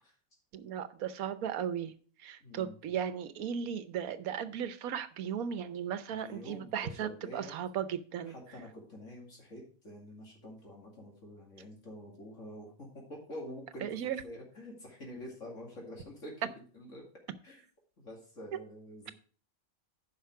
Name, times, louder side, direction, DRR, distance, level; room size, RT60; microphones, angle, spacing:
voice 1, 0.5-8.3 13.8-14.2, right 8 dB, 90° right, 1.2 m, -36 dB
voice 2, 2.4-2.8 6.1-7.6 8.3-16.5 16.7-17.0 17.4-17.6 18.0-19.1, left 1 dB, 60° left, 2.7 m, -47 dB
10.0 x 5.7 x 4.7 m
omnidirectional pair, 1.5 m